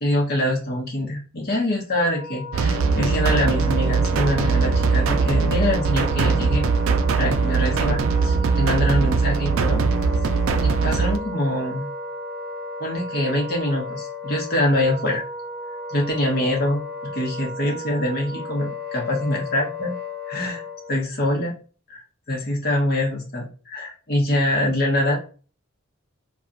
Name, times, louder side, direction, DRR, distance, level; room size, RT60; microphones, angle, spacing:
voice 1, 0.0-6.7 7.2-9.8 10.6-11.9 12.8-15.2 15.9-19.9 20.3-20.6 20.9-21.5 21.9-22.0 22.3-25.2, left 1 dB, 50° left, -1 dB, 0.9 m, -24 dB
Wind instrument woodwind instrument, 1.9-21.0, left 2 dB, 5° left, 1.3 m, -34 dB
sound 1, 2.5-11.2, right 5 dB, 80° right, 0.3 m, -21 dB
2.8 x 2.3 x 2.4 m, 0.37 s
head